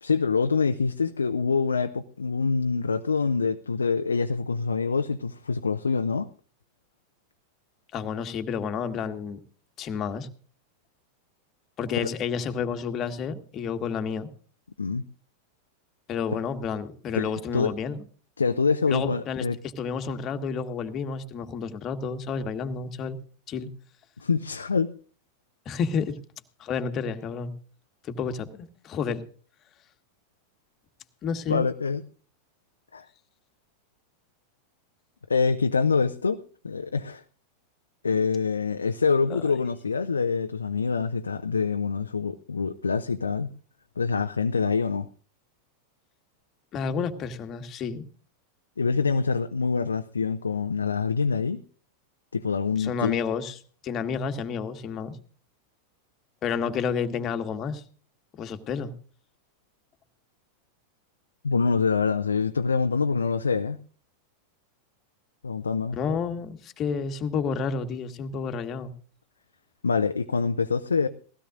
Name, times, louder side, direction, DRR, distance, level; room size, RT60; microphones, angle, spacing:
voice 1, 0.0-6.3 14.8-15.0 17.1-17.7 18.4-19.6 24.2-24.9 31.5-32.0 32.9-33.1 35.3-37.2 38.0-43.5 44.0-45.1 48.8-51.6 52.3-53.2 61.4-63.8 65.4-66.0 69.8-71.1, left 5 dB, 75° left, 0.7 m, -25 dB
voice 2, 7.9-9.4 9.8-10.3 11.8-14.3 16.1-18.0 18.9-19.4 19.8-23.2 23.5-23.7 25.6-26.2 26.6-27.5 28.0-29.2 31.2-31.7 39.3-39.4 46.7-48.1 52.8-55.2 56.4-57.8 58.3-58.9 66.0-68.9, left 6 dB, 30° left, 1.6 m, -30 dB
20.0 x 16.5 x 2.5 m
figure-of-eight pair, 90°, 0 cm